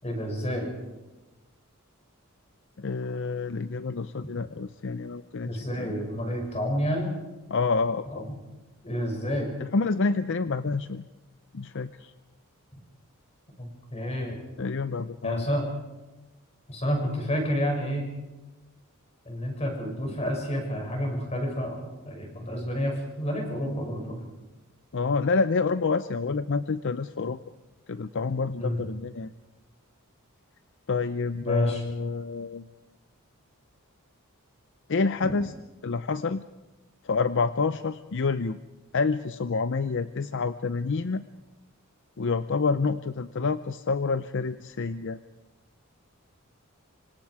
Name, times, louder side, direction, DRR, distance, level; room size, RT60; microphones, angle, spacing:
voice 1, 0.0-0.7 5.4-7.1 8.1-8.3 8.8-9.5 13.6-14.4 15.2-15.7 16.7-18.0 19.2-24.2 28.6-28.9 31.4-31.8, equal, 30° left, 2 dB, 6.5 m, -29 dB
voice 2, 2.8-5.9 7.5-8.2 9.6-11.0 11.5-12.1 14.6-15.5 24.9-27.4 27.9-29.3 30.9-32.7 34.9-35.5 35.8-36.4 37.0-38.6 38.9-41.2 42.2-45.2, left 4 dB, 60° left, 12 dB, 0.6 m, -28 dB
26.5 x 25.0 x 4.8 m, 1.1 s
head